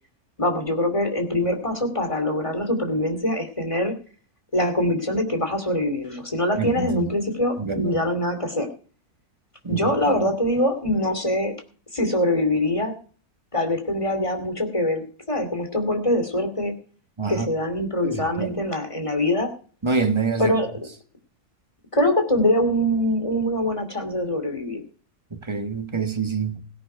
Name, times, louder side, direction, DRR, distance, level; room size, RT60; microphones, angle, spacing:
voice 1, 0.4-3.9 4.5-8.7 9.7-11.5 11.9-12.9 13.5-15.0 15.3-16.7 17.3-19.5 20.4-20.7 21.9-24.8, left 1 dB, 20° left, 2.7 m, -23 dB
voice 2, 6.6-7.1 7.6-7.9 9.6-10.3 17.2-17.5 18.0-18.6 19.8-20.5 25.3-26.7, right 4 dB, 20° right, 1.2 m, -26 dB
17.0 x 10.0 x 4.5 m
omnidirectional pair, 1.6 m